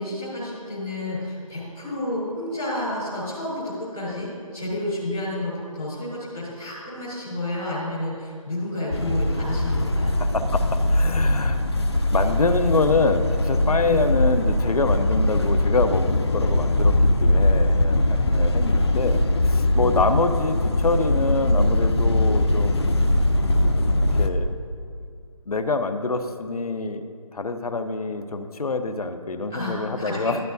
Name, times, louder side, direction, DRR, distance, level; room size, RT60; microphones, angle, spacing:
voice 1, 0.0-10.2 13.8-14.0 19.7-20.0 29.5-30.3, left 1 dB, 5° right, -15 dB, 0.6 m, -30 dB
sound 1, 8.9-24.3, left 1 dB, 45° left, 0.6 m, -21 dB
voice 2, 10.2-11.6 12.1-23.0 24.2-24.6 25.5-30.4, left 3 dB, 85° left, 8 dB, 0.7 m, -26 dB
12.0 x 9.2 x 2.7 m, 2.2 s
figure-of-eight pair, 175°, 19 cm